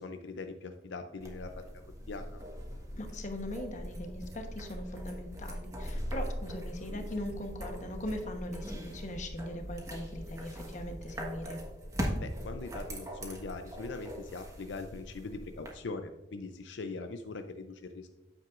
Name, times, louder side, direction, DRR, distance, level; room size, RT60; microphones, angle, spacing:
voice 1, 0.0-1.5 2.1-2.4 12.2-18.1, left 3 dB, 75° left, 7 dB, 0.5 m, -41 dB
sound 1, 1.2-15.7, equal, 15° right, 1.4 m, -40 dB
voice 2, 3.0-11.6, left 1 dB, 40° left, 5 dB, 1.1 m, -40 dB
9.0 x 7.5 x 2.5 m, 1.1 s
head